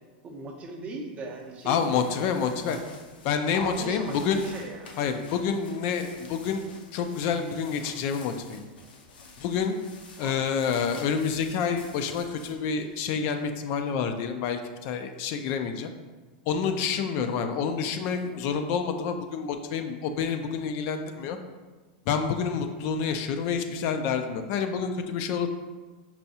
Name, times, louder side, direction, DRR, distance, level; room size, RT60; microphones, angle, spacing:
voice 1, 0.2-2.8 3.5-5.0 10.2-10.4, right 3 dB, 25° right, 2 dB, 0.6 m, -39 dB
sound 1, 1.4-13.9, left 3 dB, 85° left, 0.7 m, -50 dB
voice 2, 1.7-2.8 3.2-4.4 5.0-8.6 9.4-9.8 10.2-15.9 16.5-21.4 22.1-25.5, left 6 dB, 45° left, 6 dB, 0.3 m, -28 dB
5.4 x 2.3 x 2.7 m, 1.3 s
hypercardioid pair, 130°, 5 cm